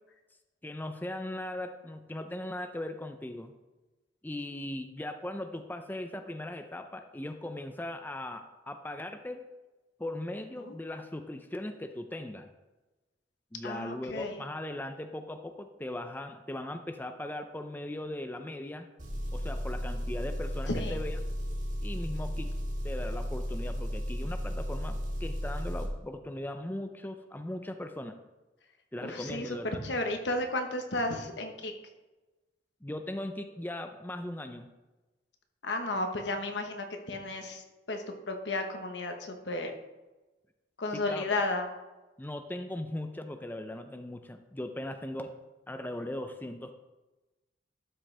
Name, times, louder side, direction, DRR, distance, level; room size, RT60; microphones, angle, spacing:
voice 1, 0.6-3.5 4.2-9.5 10.0-12.5 13.5-18.9 19.3-21.2 21.8-22.5 22.8-28.2 28.9-29.8 32.8-34.7 40.9-41.3 42.2-45.3 45.7-46.7, left 1 dB, 10° left, 7 dB, 0.5 m, -39 dB
voice 2, 13.6-14.4 20.7-21.0 29.1-29.6 29.8-31.7 35.6-37.6 37.9-39.7 40.8-41.7, left 2 dB, 70° left, 5 dB, 1.2 m, -33 dB
Engine, 19.0-25.9, equal, 45° right, 1.7 m, -34 dB
12.0 x 6.3 x 3.3 m, 1.1 s
head